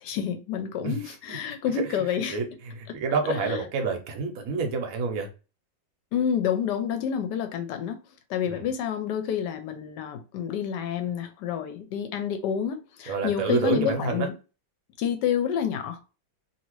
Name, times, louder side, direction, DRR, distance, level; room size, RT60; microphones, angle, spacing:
voice 1, 0.0-2.4 2.9-3.0 3.3-3.6 6.1-8.0 8.3-14.3 15.0-16.1, left 8 dB, 70° left, 1.1 m, -29 dB
voice 2, 2.3-5.3 8.5-8.7 13.1-14.3, right 5 dB, 60° right, 1.0 m, -28 dB
2.8 x 2.8 x 3.0 m
omnidirectional pair, 2.1 m